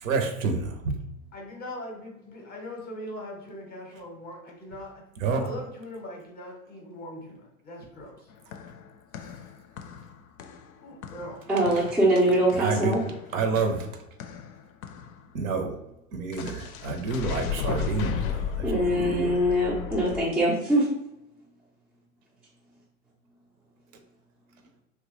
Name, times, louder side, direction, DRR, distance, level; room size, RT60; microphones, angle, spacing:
voice 1, 0.0-0.7 5.2-5.4 12.5-12.9 13.3-13.9 15.3-15.7 16.1-19.3, right 4 dB, 65° right, 5 dB, 0.7 m, -28 dB
voice 2, 1.3-5.0 5.4-8.3 10.8-12.0, left 1 dB, 20° left, 0 dB, 0.7 m, -41 dB
sound 1, 8.3-15.3 16.3-20.3, left 7 dB, 70° left, 0.5 m, -35 dB
voice 3, 11.5-13.0 18.6-20.9, right 1 dB, 5° right, -7 dB, 0.4 m, -23 dB
2.9 x 2.3 x 3.0 m, 0.87 s
hypercardioid pair, 100°, 44 cm